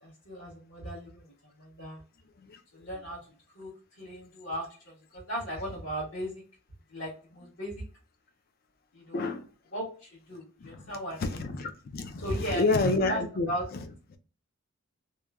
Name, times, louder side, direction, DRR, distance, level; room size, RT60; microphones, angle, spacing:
voice 1, 0.0-1.3 1.6-2.0 2.7-3.2 3.5-6.4 6.9-7.8 8.9-9.2 9.7-11.2 12.2-13.6, equal, 70° left, -7 dB, 1.4 m, -37 dB
voice 2, 9.1-9.5 10.6-10.9 11.2-13.5, left 3 dB, 45° left, 8 dB, 0.4 m, -29 dB
3.0 x 2.2 x 2.3 m, 0.39 s
head